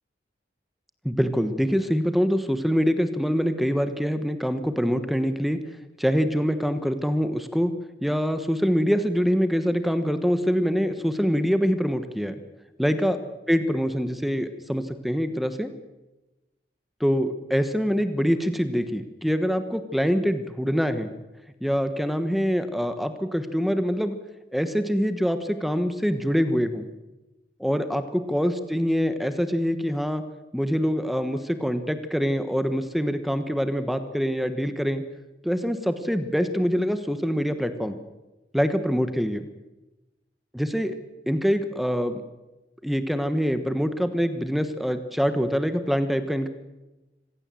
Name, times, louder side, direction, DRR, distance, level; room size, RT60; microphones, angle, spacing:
voice 1, 1.0-5.6 6.0-7.7 8.0-12.3 12.8-13.2 13.5-15.7 17.0-21.2 21.6-24.2 24.5-26.9 27.6-30.2 30.5-35.0 35.4-38.0 38.5-39.4 40.5-41.0 41.3-42.2 42.8-46.5, equal, ahead, 10 dB, 1.2 m, -24 dB
26.0 x 16.5 x 7.6 m, 1.1 s
head